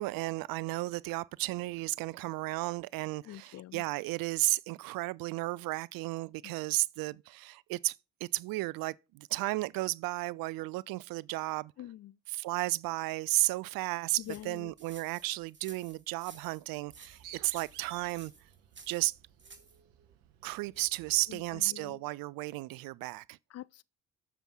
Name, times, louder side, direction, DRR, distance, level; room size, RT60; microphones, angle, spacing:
voice 1, 0.0-11.7 12.3-18.3 18.9-19.1 20.4-23.4, right 20 dB, 70° right, 0.5 m, -33 dB
voice 2, 3.2-3.8 6.4-6.5 11.8-12.2 14.2-14.7 21.3-22.0 23.5-23.8, left 13 dB, 45° left, 0.4 m, -45 dB
sound 1, 14.2-19.8, right 4 dB, 30° right, 2.3 m, -54 dB
Bird, 16.9-21.7, right 10 dB, 85° right, 0.9 m, -55 dB
7.0 x 5.8 x 6.2 m
hypercardioid pair, 40°, 36 cm